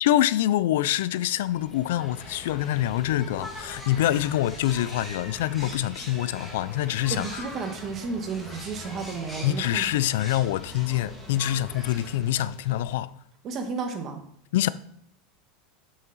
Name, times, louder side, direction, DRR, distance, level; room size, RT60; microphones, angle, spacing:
voice 1, 0.0-7.3 9.4-13.1 14.5-14.7, left 13 dB, 80° left, 0.4 m, -25 dB
sound 1, 1.4-13.0, left 1 dB, 5° left, 2.3 m, -42 dB
voice 2, 7.1-9.9 13.4-14.2, right 5 dB, 35° right, 1.4 m, -32 dB
7.4 x 5.8 x 4.0 m
supercardioid pair, 135°, 0 cm